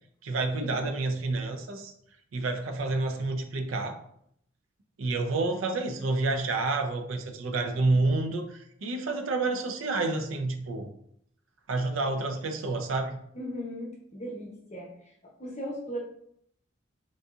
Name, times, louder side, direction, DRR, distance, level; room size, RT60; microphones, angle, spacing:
voice 1, 0.2-1.9 2.3-4.0 5.0-10.9 11.7-13.2, right 3 dB, 85° right, 6 dB, 0.5 m, -29 dB
voice 2, 13.3-14.9 15.2-16.0, equal, 35° left, -1 dB, 0.7 m, -37 dB
3.8 x 2.6 x 2.3 m, 0.69 s
head